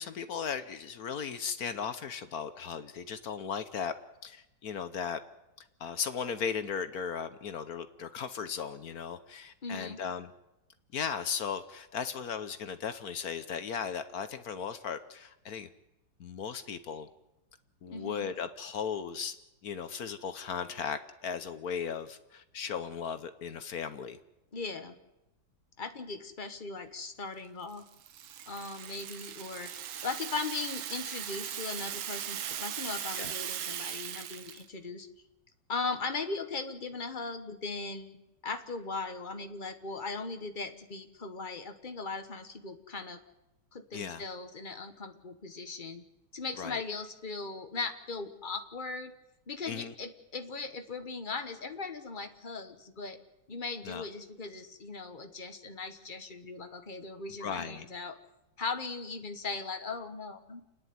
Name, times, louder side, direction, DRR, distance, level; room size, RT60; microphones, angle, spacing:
voice 1, 0.0-3.9 4.2-5.2 5.8-10.3 10.9-15.7 16.2-17.1 17.8-19.3 19.6-24.2 33.1-33.3 43.9-44.2 46.6-46.8 49.7-49.9 53.8-54.0 57.4-57.9, left 7 dB, 60° left, 11 dB, 1.2 m, -36 dB
voice 2, 9.6-10.0 17.9-18.3 24.5-24.9 25.8-27.8 28.5-35.1 35.7-43.2 43.7-46.0 46.3-49.1 49.5-53.2 53.5-58.2 58.6-60.6, left 4 dB, 30° left, 7 dB, 1.3 m, -38 dB
Rattle (instrument), 27.7-34.7, right 10 dB, 80° right, 1.7 m, -39 dB
28.5 x 10.0 x 9.4 m, 0.92 s
omnidirectional pair, 2.1 m